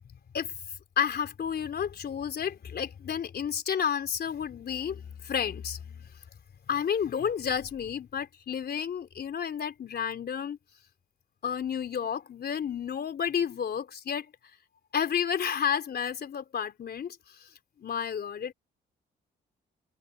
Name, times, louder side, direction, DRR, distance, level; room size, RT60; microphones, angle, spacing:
voice 1, 1.0-6.1 6.7-10.6 11.4-14.3 14.9-17.2 17.8-18.5, left 8 dB, 60° left, 3.6 m, -31 dB
cardioid pair, 70°, 19 cm